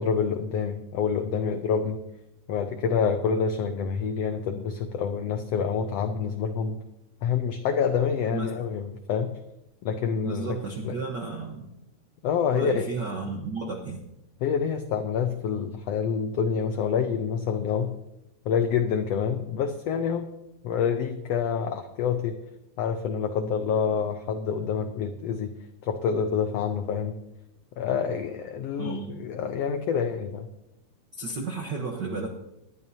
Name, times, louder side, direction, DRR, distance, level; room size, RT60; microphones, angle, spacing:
voice 1, 0.0-2.0 2.5-6.8 7.2-9.3 9.8-10.6 10.8-11.0 12.2-12.8 14.4-17.9 18.4-20.3 20.6-22.4 22.8-25.5 25.8-27.2 27.8-30.5, left 6 dB, 90° left, 7 dB, 1.4 m, -27 dB
voice 2, 10.2-11.7 12.5-14.0 28.8-29.2 31.2-32.3, right 4 dB, 70° right, 1 dB, 1.0 m, -33 dB
19.5 x 12.0 x 2.8 m, 0.87 s
omnidirectional pair, 3.7 m